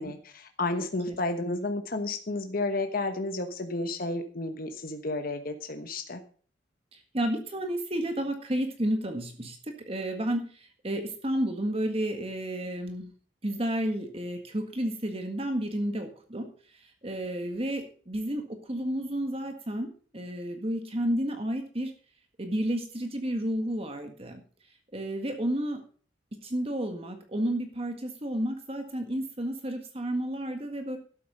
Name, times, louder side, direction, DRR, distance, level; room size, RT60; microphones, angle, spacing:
voice 1, 0.0-6.2, left 2 dB, 50° left, 7 dB, 1.2 m, -32 dB
voice 2, 6.9-13.1 13.4-19.9 20.1-21.9 22.4-24.4 24.9-25.8 26.4-31.0, right 1 dB, 30° right, 5 dB, 1.7 m, -31 dB
12.0 x 8.6 x 5.5 m, 0.42 s
head